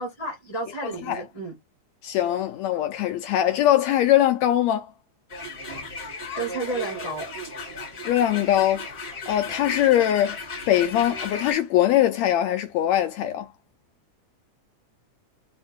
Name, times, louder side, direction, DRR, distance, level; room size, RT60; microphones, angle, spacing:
voice 1, 0.0-1.5 6.4-7.3, right 2 dB, 10° left, 1.3 m, -31 dB
voice 2, 0.8-1.2 2.0-4.9 8.1-8.8 9.3-10.4 10.7-13.5, left 12 dB, 80° left, 1.7 m, -22 dB
sound 1, 5.3-11.5, left 3 dB, 30° left, 2.0 m, -35 dB
4.3 x 2.8 x 4.2 m
omnidirectional pair, 3.4 m